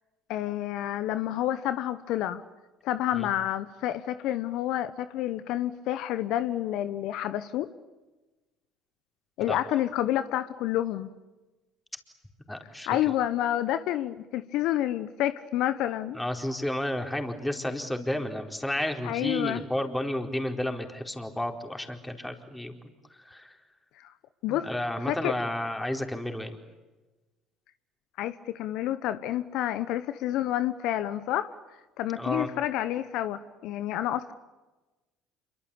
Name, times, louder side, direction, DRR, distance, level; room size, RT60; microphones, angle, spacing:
voice 1, 0.3-2.4 2.8-7.7 9.4-11.1 12.9-16.2 19.0-19.6 24.0-24.1 24.4-24.7 25.1-25.4 28.2-31.6 32.0-34.3, left 12 dB, 65° left, 12 dB, 1.0 m, -29 dB
voice 2, 12.5-13.0 16.1-22.8 23.2-23.6 24.5-26.6 32.2-32.5, left 1 dB, 10° left, 4 dB, 4.5 m, -32 dB
28.0 x 24.0 x 8.6 m, 1.1 s
hypercardioid pair, 65°, 0 cm